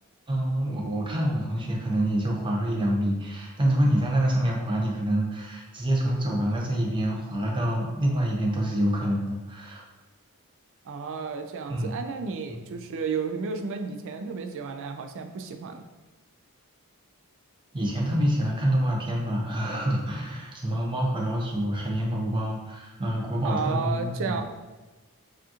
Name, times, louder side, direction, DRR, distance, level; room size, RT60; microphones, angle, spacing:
voice 1, 0.3-9.8 11.7-12.0 12.5-12.6 17.7-24.4, right 1 dB, 20° right, -2 dB, 0.7 m, -26 dB
voice 2, 10.8-15.8 23.4-24.4, right 5 dB, 60° right, 6 dB, 0.4 m, -32 dB
4.9 x 2.5 x 2.9 m, 1.2 s
head